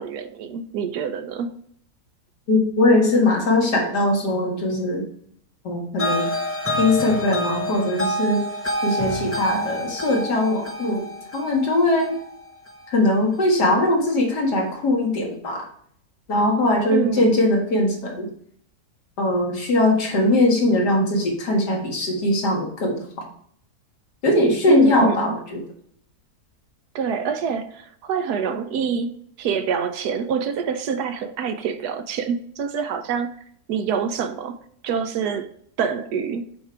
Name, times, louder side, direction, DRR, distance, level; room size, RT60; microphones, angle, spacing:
voice 1, 0.0-1.6 16.9-17.5 24.7-25.4 26.9-33.3 33.7-35.5 35.8-36.5, right 6 dB, 80° right, 1.3 m, -26 dB
voice 2, 2.5-5.0 5.7-6.3 6.8-8.4 8.8-11.0 11.3-12.1 12.9-15.6 16.3-18.3 19.2-23.0 24.2-25.6, left 1 dB, 90° left, 2.3 m, -20 dB
sound 1, 6.0-13.1, equal, 20° left, 0.3 m, -28 dB
7.0 x 5.0 x 4.4 m
omnidirectional pair, 1.7 m